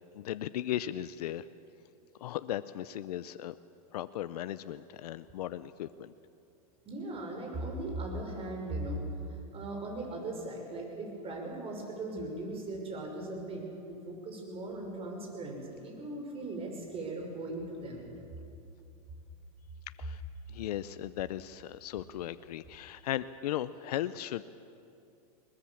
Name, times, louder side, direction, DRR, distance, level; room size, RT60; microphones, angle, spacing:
voice 1, 0.1-1.4 2.2-3.6 3.9-6.1 20.0-20.2 20.5-24.4, left 12 dB, 80° left, 14 dB, 0.7 m, -36 dB
voice 2, 6.8-9.0 9.5-18.0, right 2 dB, 30° right, 1 dB, 6.1 m, -38 dB
21.5 x 21.0 x 7.2 m, 2.6 s
hypercardioid pair, 115°, 20 cm